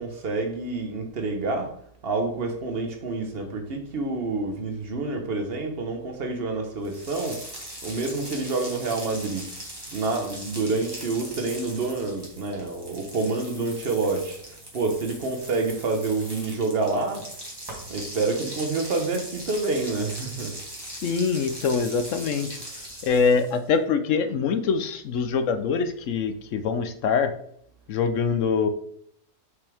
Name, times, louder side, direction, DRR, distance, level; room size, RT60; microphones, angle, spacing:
voice 1, 0.0-1.7 2.0-7.4 7.8-9.5 9.9-17.3 17.9-20.6, right 3 dB, 40° right, 1.2 m, -28 dB
sound 1, 6.8-23.7, right 1 dB, 15° right, 1.7 m, -40 dB
voice 2, 20.9-22.5 23.0-27.3 27.9-28.7, left 5 dB, 65° left, 0.9 m, -24 dB
6.2 x 5.7 x 3.5 m
omnidirectional pair, 1.7 m